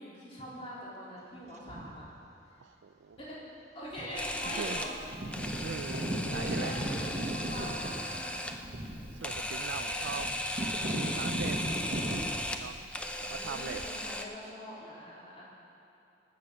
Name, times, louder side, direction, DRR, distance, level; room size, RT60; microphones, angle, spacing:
voice 1, 0.0-2.1 3.2-3.4 3.7-4.9 6.3-8.5 9.0-10.2 13.1-15.4, equal, 30° left, -7 dB, 3.7 m, -43 dB
sound 1, 1.7-2.1 3.2-3.3 3.9-4.3 4.6-4.7 4.9-12.3, right 1 dB, 35° right, 1.4 m, -36 dB
voice 2, 2.6-3.2 4.5-4.9 5.6-6.9 9.1-10.3 11.0-11.6 12.6-12.9 13.3-13.9, right 6 dB, 80° right, 8 dB, 0.4 m, -41 dB
Camera, 4.2-14.2, left 1 dB, 5° left, 0.5 m, -37 dB
20.0 x 7.8 x 6.4 m, 2.7 s
head